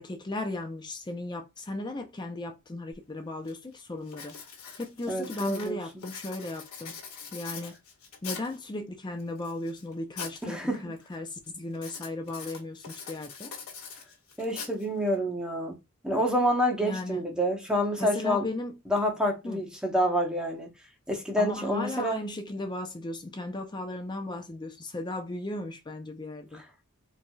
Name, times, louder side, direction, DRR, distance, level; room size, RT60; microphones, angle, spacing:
voice 1, 0.0-4.4 4.8-7.0 7.3-7.8 8.2-13.5 16.8-17.2 18.0-18.8 19.4-19.6 21.4-26.6, left 2 dB, 20° left, 0.5 m, -36 dB
Writing, 2.9-3.0 3.5-3.7 4.1-8.6 9.2-10.4 10.7-11.2 11.7-15.2, left 6 dB, 75° left, 1.6 m, -43 dB
voice 2, 5.1-5.8 10.4-10.8 14.4-15.8 16.0-18.5 18.9-20.7 21.1-22.2, equal, 5° right, 0.9 m, -27 dB
4.6 x 2.6 x 2.3 m
head